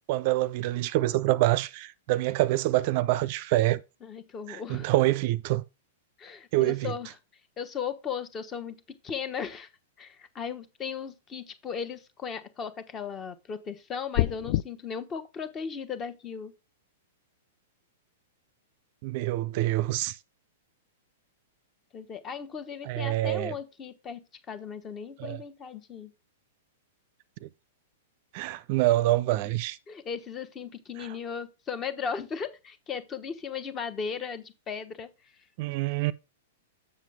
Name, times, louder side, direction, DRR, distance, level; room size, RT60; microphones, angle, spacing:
voice 1, 0.1-3.8 4.5-5.6 6.5-6.9 19.0-20.2 22.8-23.5 25.2-25.4 27.4-27.5 28.3-29.8 31.0-31.1 35.6-36.1, right 16 dB, 45° right, 0.4 m, -26 dB
voice 2, 4.0-4.9 6.2-7.1 7.6-8.8 9.0-9.7 10.0-16.5 21.9-24.2 24.5-26.1 29.9-35.1, left 6 dB, 25° left, 1.0 m, -36 dB
sound 1, 14.1-14.6, left 15 dB, 45° left, 0.4 m, -25 dB
7.3 x 6.7 x 3.4 m
figure-of-eight pair, 105°, 0 cm